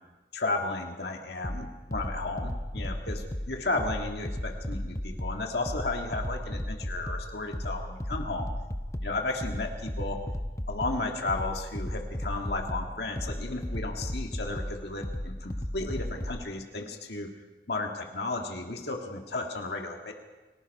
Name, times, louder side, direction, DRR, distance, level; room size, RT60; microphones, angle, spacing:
voice 1, 0.3-8.5 9.0-10.2 10.7-17.3 17.7-20.1, left 2 dB, 75° left, 3 dB, 1.7 m, -34 dB
sound 1, 1.4-16.4, equal, 20° left, 0.9 m, -35 dB
29.5 x 19.0 x 5.4 m, 1.2 s
head